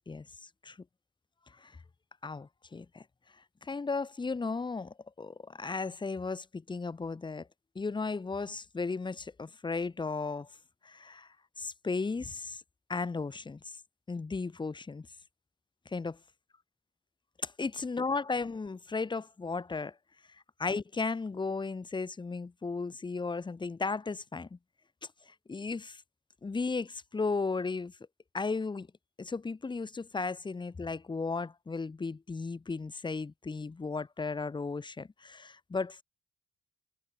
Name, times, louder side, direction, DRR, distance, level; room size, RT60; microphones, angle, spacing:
voice 1, 0.1-0.8 1.6-1.7 2.2-3.0 3.6-7.5 7.7-10.5 10.8-11.3 11.6-12.6 12.9-13.6 14.1-15.1 15.9-16.2 17.4-19.9 20.6-24.6 25.3-26.0 26.4-27.9 28.3-28.9 29.2-36.0, left 4 dB, 25° left, 1.3 m, -35 dB
cardioid pair, 90°, 20 cm